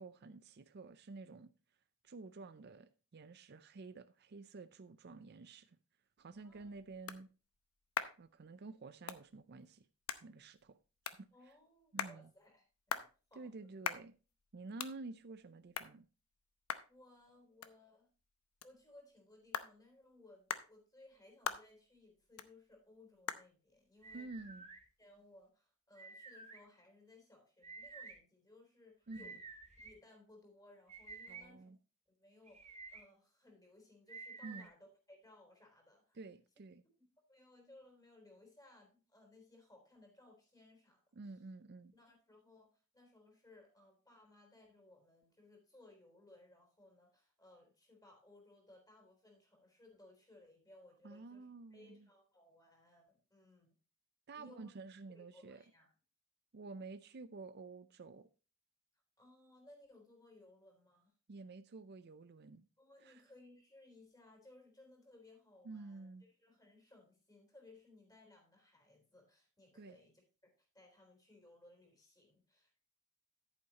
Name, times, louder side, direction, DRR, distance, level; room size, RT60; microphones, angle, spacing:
voice 1, 0.0-1.5 2.0-5.8 6.2-7.3 8.2-9.9 10.1-10.8 11.1-11.3 11.9-12.3 13.4-14.1 14.5-16.1 24.1-24.7 29.1-29.3 31.3-31.8 34.4-34.7 36.1-36.8 41.1-41.9 51.0-52.1 54.3-55.6 56.5-58.3 61.3-62.6 63.0-63.2 65.6-66.2 69.8-70.0, right 3 dB, 50° right, 0.5 m, -50 dB
sound 1, 6.2-25.5, left 7 dB, 75° left, 0.8 m, -47 dB
voice 2, 6.3-6.7 11.3-13.7 16.9-18.1 18.6-24.3 25.0-29.4 29.8-31.8 32.1-36.2 37.3-41.0 41.9-53.7 54.3-54.7 55.1-55.9 59.2-61.1 62.8-66.1 66.4-72.8, left 2 dB, 15° left, 3.7 m, -63 dB
sound 2, 24.0-24.8 26.0-26.6 27.6-28.1 29.1-29.9 30.9-31.4 32.5-33.0 34.1-34.7, right 4 dB, 30° right, 2.4 m, -51 dB
10.5 x 9.2 x 2.9 m
head